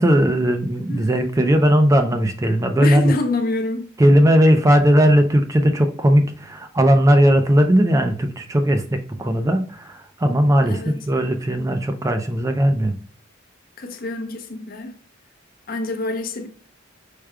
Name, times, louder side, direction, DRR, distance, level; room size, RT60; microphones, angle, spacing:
voice 1, 0.0-3.1 4.0-12.9, equal, 15° right, 0.4 m, -17 dB
voice 2, 2.8-3.9 10.6-11.1 13.8-14.9 15.7-16.5, left 2 dB, 45° left, 0.6 m, -27 dB
4.9 x 2.2 x 4.6 m
head